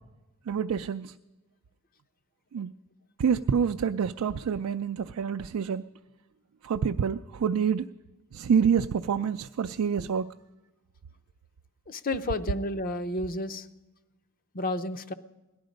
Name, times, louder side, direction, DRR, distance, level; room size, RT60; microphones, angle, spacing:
voice 1, 0.5-1.1 2.5-2.7 3.2-5.8 6.6-7.9 8.3-10.3, right 7 dB, 80° right, 8 dB, 0.4 m, -27 dB
voice 2, 11.9-13.7 14.5-15.1, left 2 dB, 40° left, 11 dB, 0.6 m, -31 dB
18.0 x 11.5 x 5.1 m, 1.1 s
head